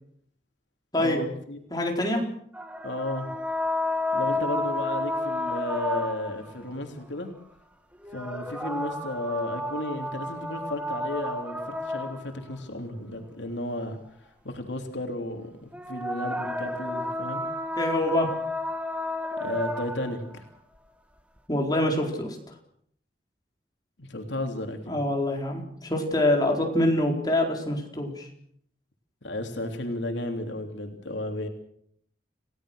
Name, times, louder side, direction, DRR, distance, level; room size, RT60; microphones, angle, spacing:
voice 1, 1.0-1.6 2.8-3.3 4.1-7.3 8.1-15.5 15.9-17.4 19.4-20.4 24.0-25.0 29.2-31.5, left 1 dB, 85° left, 4 dB, 3.3 m, -33 dB
voice 2, 1.7-2.2 4.3-4.5 17.8-18.3 21.5-22.4 24.9-28.3, left 1 dB, 20° left, 1 dB, 4.5 m, -25 dB
sound 1, 2.5-6.5 8.0-12.6 15.7-20.2, left 1 dB, 5° right, 1.5 m, -31 dB
29.5 x 17.5 x 6.5 m, 0.66 s
head